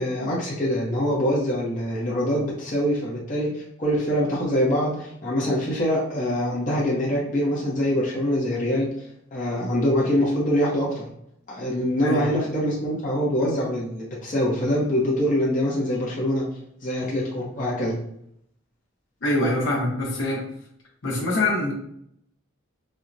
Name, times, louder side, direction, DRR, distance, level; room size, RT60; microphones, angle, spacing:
voice 1, 0.0-8.9 9.3-11.1 11.5-16.4 16.8-18.0, equal, 40° left, -5 dB, 0.7 m, -24 dB
voice 2, 19.2-20.4 21.0-21.7, left 1 dB, 70° left, -2 dB, 0.9 m, -24 dB
4.3 x 2.1 x 2.5 m, 0.72 s
head